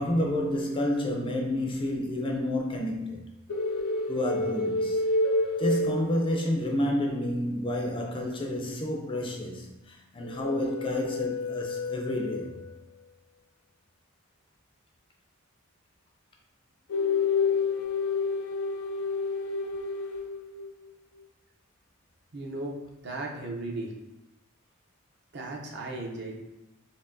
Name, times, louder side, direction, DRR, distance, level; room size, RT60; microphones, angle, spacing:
voice 1, 0.0-3.4 4.1-5.0 5.6-12.5, left 1 dB, 25° left, 0.4 m, -30 dB
sound 1, 3.5-6.7 10.2-12.8 16.9-20.7, left 3 dB, 80° left, 0.5 m, -29 dB
voice 2, 22.3-23.9 25.3-26.5, right 2 dB, 50° right, 0.6 m, -36 dB
4.4 x 3.0 x 2.6 m
head